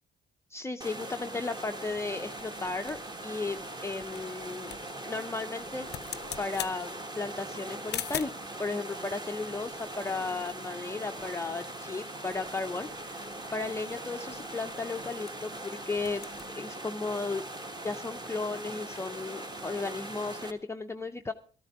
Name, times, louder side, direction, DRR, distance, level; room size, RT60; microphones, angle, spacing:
voice 1, 0.5-4.7 5.0-5.9 6.4-8.3 8.6-13.2 13.5-17.4 17.8-21.3, left 3 dB, 15° left, 5 dB, 0.6 m, -35 dB
sound 1, 0.8-20.5, right 1 dB, 20° right, 1.5 m, -41 dB
sound 2, 1.1-8.5 9.3-10.9 11.2-11.3 11.6-11.9 12.3-15.6 15.8-16.5, left 11 dB, 55° left, 0.6 m, -44 dB
13.5 x 13.5 x 4.7 m, 0.40 s
cardioid pair, 90°, 20 cm